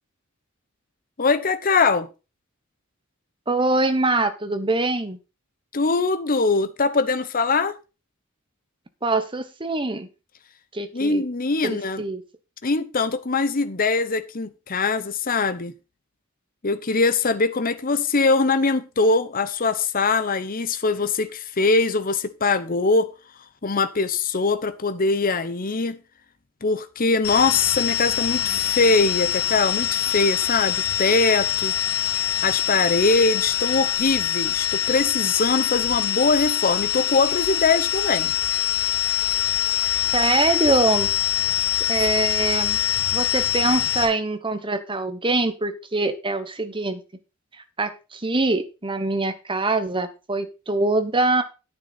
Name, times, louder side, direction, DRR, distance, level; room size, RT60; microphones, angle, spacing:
voice 1, 1.2-2.1 5.7-7.8 10.9-12.0 12.6-15.7 16.6-23.1 23.6-26.0 26.6-31.7 32.4-38.3, left 3 dB, 40° left, 0.9 m, -22 dB
voice 2, 3.5-5.2 9.0-10.1 10.7-11.2 11.6-12.2 39.9-41.1 41.9-42.8 43.1-47.0 47.8-51.4, right 2 dB, 25° right, 1.2 m, -24 dB
sound 1, 27.2-44.1, left 10 dB, 90° left, 2.9 m, -24 dB
10.5 x 9.2 x 4.1 m
head